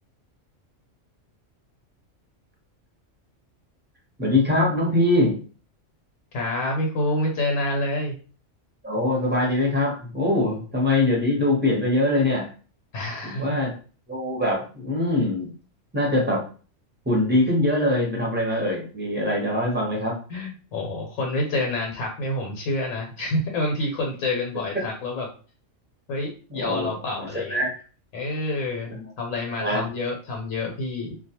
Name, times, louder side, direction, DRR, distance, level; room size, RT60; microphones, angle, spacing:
voice 1, 4.2-5.4 8.8-12.5 13.2-13.7 14.1-15.5 15.9-16.4 17.1-20.1 26.5-26.9 27.2-27.8 28.9-29.1 29.6-29.8, left 1 dB, 10° right, -2 dB, 0.6 m, -23 dB
voice 2, 6.3-8.1 12.9-13.6 20.3-25.3 26.1-27.6 28.1-31.2, left 2 dB, 80° left, 0 dB, 1.0 m, -28 dB
2.3 x 2.2 x 2.8 m, 0.38 s
omnidirectional pair, 1.4 m